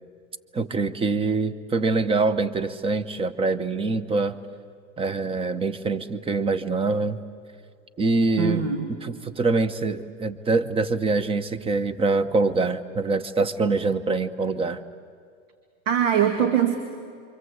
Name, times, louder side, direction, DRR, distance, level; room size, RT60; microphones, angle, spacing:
voice 1, 0.5-4.4 5.0-7.2 8.0-8.6 9.0-14.8, right 3 dB, 15° right, 14 dB, 1.0 m, -24 dB
voice 2, 8.4-8.9 15.9-16.8, right 8 dB, 80° right, 6 dB, 2.3 m, -21 dB
28.5 x 25.0 x 8.1 m, 2.2 s
hypercardioid pair, 130°, 38 cm